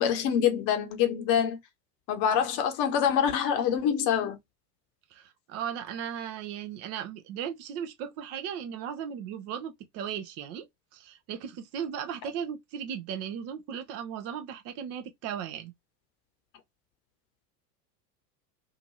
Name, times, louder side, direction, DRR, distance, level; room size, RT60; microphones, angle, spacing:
voice 1, 0.0-1.6 2.1-4.4, left 8 dB, 45° left, 0.9 m, -25 dB
voice 2, 5.1-15.7, right 8 dB, 35° right, 0.5 m, -37 dB
2.8 x 2.5 x 2.8 m
figure-of-eight pair, 80°, 48 cm